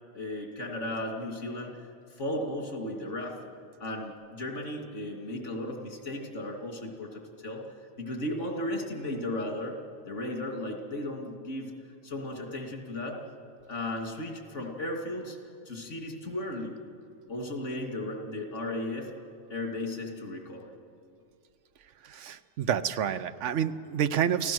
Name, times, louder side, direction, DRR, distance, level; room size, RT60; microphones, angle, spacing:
voice 1, 0.1-1.7 2.1-3.4 3.8-7.6 8.0-9.7 10.0-11.7 12.0-13.2 13.7-15.4 15.7-16.8 17.3-19.1 19.5-20.7, left 1 dB, 85° left, 2 dB, 2.9 m, -35 dB
voice 2, 22.0-24.5, right 9 dB, 85° right, 13 dB, 1.1 m, -29 dB
28.5 x 16.0 x 6.2 m, 2.5 s
omnidirectional pair, 1.2 m